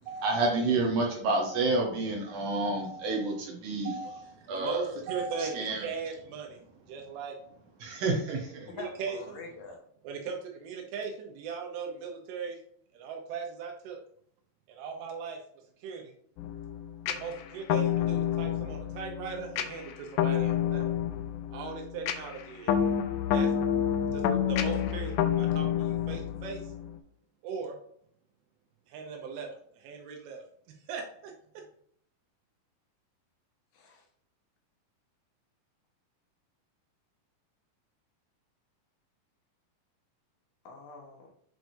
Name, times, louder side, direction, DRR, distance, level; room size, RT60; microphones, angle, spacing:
voice 1, 0.1-5.9 7.8-8.7, right 2 dB, 70° right, 0 dB, 2.0 m, -30 dB
voice 2, 4.4-6.6 6.9-7.4 8.7-9.4 10.0-12.6 12.9-14.0 14.7-15.4 15.8-16.1 17.1-20.8 21.5-22.8 23.3-23.5 24.1-25.1 25.4-26.6 27.4-27.8 28.9-29.5 29.8-30.4 30.9-31.3, right 5 dB, 85° right, 1 dB, 2.8 m, -38 dB
voice 3, 8.8-9.8 33.7-34.0 40.6-41.3, left 4 dB, 70° left, 1 dB, 2.6 m, -45 dB
sound 1, 16.4-27.0, left 9 dB, 90° left, 1.8 m, -29 dB
7.7 x 4.7 x 2.6 m, 0.64 s
omnidirectional pair, 4.4 m